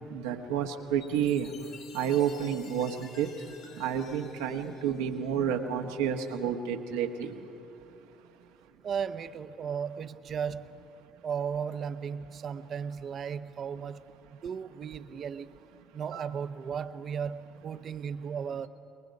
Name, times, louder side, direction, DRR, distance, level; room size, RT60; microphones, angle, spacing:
voice 1, 0.1-7.5 16.0-16.3, right 8 dB, 80° right, 1.3 m, -30 dB
Chime, 1.0-5.7, left 6 dB, 65° left, 1.7 m, -52 dB
voice 2, 8.8-10.8 11.2-14.0 14.4-15.5 15.9-18.7, right 7 dB, 50° right, 0.8 m, -35 dB
29.0 x 21.5 x 5.3 m
hypercardioid pair, 60°, 0 cm